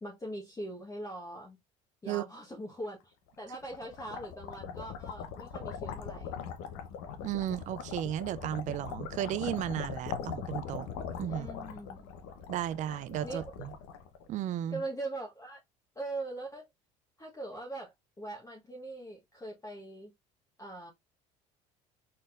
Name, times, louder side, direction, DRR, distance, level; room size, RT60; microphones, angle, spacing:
voice 1, 0.0-1.6 2.0-6.5 11.2-12.1 13.2-13.4 14.7-15.6 15.9-16.7 17.2-20.1 20.6-20.9, right 2 dB, 20° left, 1.2 m, -41 dB
sound 1, 3.4-14.5, left 7 dB, 75° left, 0.9 m, -41 dB
voice 2, 7.2-10.9 11.2-11.5 12.5-13.7 14.3-14.8, right 12 dB, 45° right, 0.4 m, -34 dB
4.1 x 3.7 x 2.5 m
supercardioid pair, 80°, 17 cm